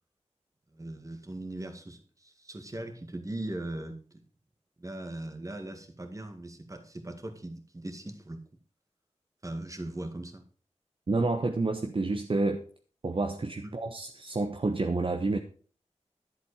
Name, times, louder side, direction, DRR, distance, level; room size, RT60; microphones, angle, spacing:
voice 1, 0.7-4.2 4.8-8.4 9.4-10.4, right 1 dB, 30° right, 6 dB, 2.0 m, -39 dB
voice 2, 11.1-12.6 13.0-15.4, right 3 dB, 50° right, 4 dB, 1.0 m, -29 dB
11.5 x 7.7 x 4.8 m, 0.41 s
wide cardioid pair, 80°, 12 cm